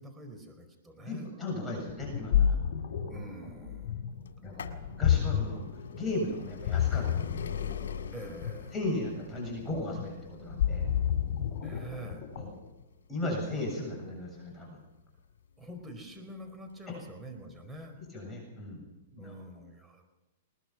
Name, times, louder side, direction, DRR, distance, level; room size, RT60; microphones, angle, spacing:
voice 1, 0.0-1.3 3.1-4.0 8.1-8.7 11.6-12.2 15.6-18.0 19.2-20.1, right 1 dB, 10° right, 4 dB, 4.7 m, -45 dB
voice 2, 1.0-2.6 4.4-5.6 5.9-7.6 8.7-10.9 12.4-12.5 13.1-14.8 16.9-17.0 18.1-18.9 19.1-19.3, left 2 dB, 10° left, -2 dB, 7.6 m, -36 dB
Ocean, 1.9-12.7, left 9 dB, 50° left, 4.1 m, -31 dB
sound 1, 4.3-15.9 16.7-16.8 17.8-17.9 18.1-18.2, left 7 dB, 85° left, 2.0 m, -44 dB
21.5 x 20.5 x 6.1 m, 1.0 s
hypercardioid pair, 130°, 0 cm